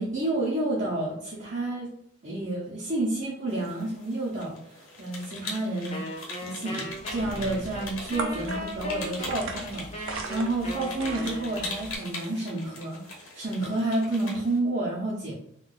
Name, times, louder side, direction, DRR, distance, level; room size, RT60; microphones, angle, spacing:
voice 1, 0.0-1.9 2.2-15.3, right 2 dB, 40° right, -7 dB, 0.7 m, -30 dB
sound 1, 3.5-14.6, left 2 dB, 85° left, 0.9 m, -41 dB
Wind instrument woodwind instrument, 5.9-11.9, equal, 30° left, 0.5 m, -38 dB
sound 2, 6.8-11.9, right 3 dB, 80° right, 0.5 m, -39 dB
2.5 x 2.3 x 3.8 m, 0.72 s
head